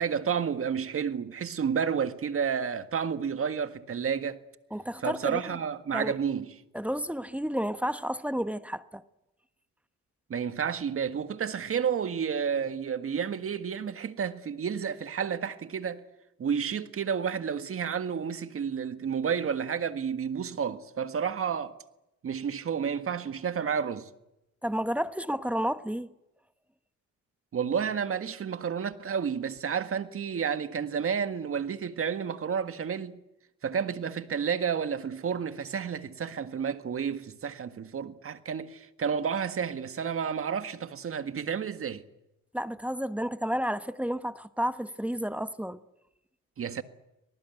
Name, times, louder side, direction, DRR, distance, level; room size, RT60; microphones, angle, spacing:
voice 1, 0.0-4.4 5.0-6.5 10.3-16.0 16.4-21.7 22.2-24.1 27.5-33.2 33.6-42.0 46.6-46.8, right 7 dB, 45° right, 1.7 m, -31 dB
voice 2, 4.7-5.4 5.9-6.2 6.7-9.0 24.6-26.1 42.5-45.8, equal, 5° right, 1.0 m, -31 dB
25.0 x 19.0 x 9.3 m
cardioid pair, 90°, 30 cm